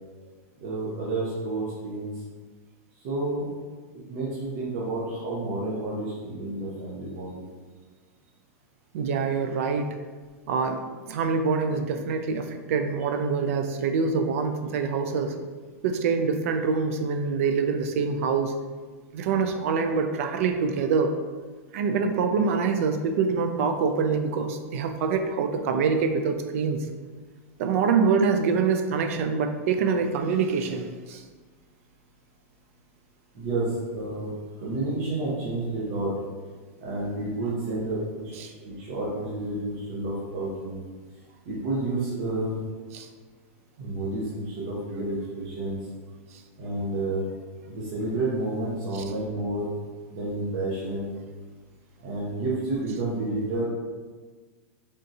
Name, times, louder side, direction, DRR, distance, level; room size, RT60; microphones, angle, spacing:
voice 1, 0.6-2.1 3.0-3.5 4.1-7.5 33.3-34.3 34.6-36.1 36.8-40.8 41.5-42.6 43.8-45.8 46.6-47.2 47.7-49.7 50.1-51.1 52.0-53.6, right 2 dB, 45° right, -6 dB, 0.8 m, -30 dB
voice 2, 8.9-9.9 10.5-15.4 15.8-18.5 19.1-21.1 21.7-26.9 27.6-31.2 38.4-38.5 42.9-43.1 48.9-49.0, right 5 dB, 65° right, 7 dB, 0.4 m, -25 dB
3.6 x 2.7 x 2.6 m, 1.4 s
supercardioid pair, 145°, 8 cm